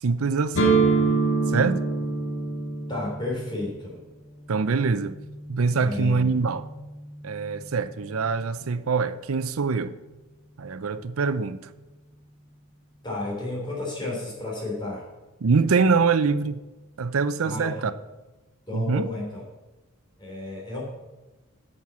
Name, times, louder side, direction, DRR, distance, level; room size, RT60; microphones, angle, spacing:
voice 1, 0.0-0.8 1.5-1.8 4.5-5.2 5.5-6.7 7.2-10.0 10.6-11.6 15.4-16.6 17.0-17.9 18.7-19.1, right 4 dB, 90° right, 0.6 m, -24 dB
sound 1, 0.5-8.3, right 4 dB, 65° left, 1.9 m, -28 dB
voice 2, 2.9-4.0 5.8-6.3 13.0-15.0 17.4-17.9 18.7-19.4 20.2-20.8, left 2 dB, 20° left, 3.3 m, -32 dB
8.9 x 6.4 x 7.1 m
head